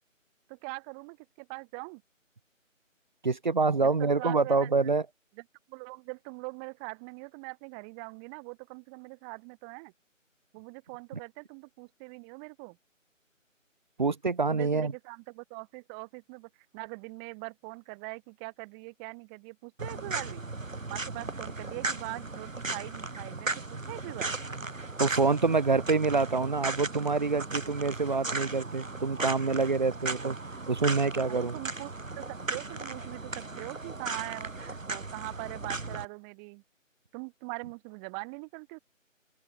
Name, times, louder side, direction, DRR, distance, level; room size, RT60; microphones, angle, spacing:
voice 1, 0.5-2.0 3.8-4.7 5.7-9.9 10.5-12.8 14.5-20.4 20.9-24.3 31.3-36.6 37.1-38.8, right 40 dB or more, 5° right, 2.3 m, -42 dB
voice 2, 3.2-5.0 14.0-14.9 25.0-30.4 30.7-31.6, right 4 dB, 35° right, 2.5 m, -26 dB
sound 1, 19.8-36.0, right 3 dB, 75° right, 5.1 m, -36 dB
open air
figure-of-eight pair, 170°, 40 cm